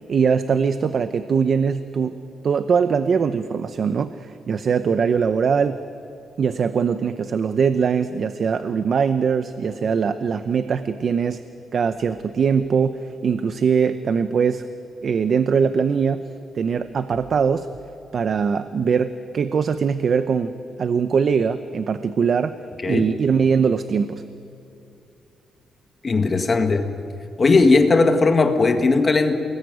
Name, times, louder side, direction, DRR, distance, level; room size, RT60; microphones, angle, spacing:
voice 1, 0.1-2.2 2.4-5.8 6.4-11.4 11.7-14.7 15.0-16.3 16.5-17.7 18.1-22.5 22.8-24.2, right 6 dB, 50° right, 11 dB, 0.8 m, -21 dB
voice 2, 26.0-26.9 27.4-29.3, left 3 dB, 30° left, 6 dB, 1.8 m, -17 dB
29.0 x 20.5 x 9.4 m, 2.8 s
cardioid pair, 145°, 0 cm